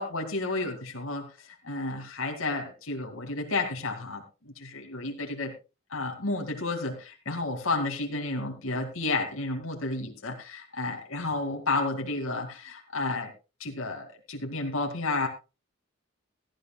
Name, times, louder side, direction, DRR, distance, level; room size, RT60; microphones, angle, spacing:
voice 1, 0.0-4.2 4.6-5.5 5.9-13.3 13.6-15.3, left 2 dB, 80° left, 3 dB, 2.3 m, -31 dB
18.0 x 13.0 x 2.3 m, 0.30 s
head